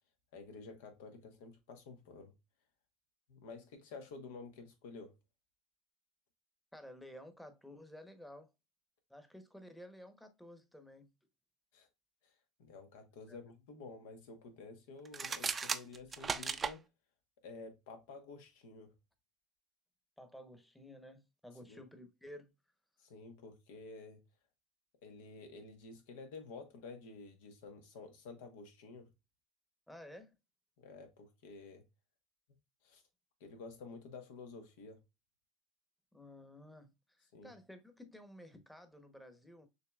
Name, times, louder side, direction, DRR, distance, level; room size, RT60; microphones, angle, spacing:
voice 1, 0.3-2.3 3.3-5.1 11.7-11.9 12.2-12.3 12.6-16.8 17.4-18.9 21.7-21.8 23.0-24.2 25.0-29.1 30.8-31.8 32.8-33.0 33.4-35.0 37.3-37.5, left 4 dB, 80° left, 1.2 m, -51 dB
voice 2, 6.7-8.5 9.1-11.1 13.3-13.4 20.2-22.5 29.9-30.3 36.1-39.7, left 1 dB, 5° left, 0.9 m, -53 dB
sound 1, 15.0-16.8, right 5 dB, 25° right, 0.5 m, -36 dB
6.4 x 2.9 x 2.3 m
supercardioid pair, 105°, 0 cm